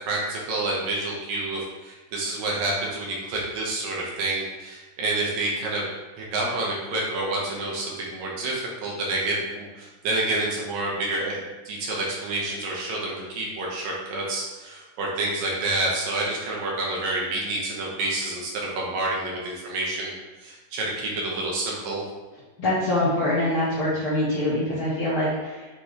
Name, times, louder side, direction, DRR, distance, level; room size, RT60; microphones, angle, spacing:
voice 1, 0.1-5.8 6.2-20.1 20.4-22.0, right 2 dB, 70° right, -3 dB, 2.9 m, -28 dB
voice 2, 22.6-25.7, left 1 dB, 45° left, -9 dB, 1.9 m, -24 dB
7.9 x 6.0 x 3.3 m, 1.2 s
omnidirectional pair, 4.5 m